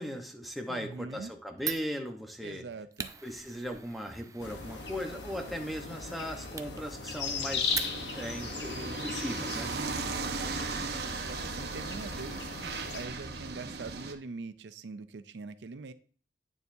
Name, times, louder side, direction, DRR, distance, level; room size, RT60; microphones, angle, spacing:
voice 1, 0.0-2.6 3.2-7.8 8.1-9.8, equal, ahead, 2 dB, 1.0 m, -38 dB
voice 2, 0.7-1.3 2.4-3.1 10.0-10.5 11.3-15.9, right 4 dB, 80° right, 12 dB, 0.5 m, -43 dB
Fire, 1.6-8.4, right 7 dB, 20° right, 0.4 m, -43 dB
sound 1, 4.4-13.1, left 5 dB, 80° left, 1.1 m, -38 dB
sound 2, 7.7-14.1, right 4 dB, 65° right, 0.8 m, -37 dB
9.6 x 6.8 x 2.7 m, 0.43 s
head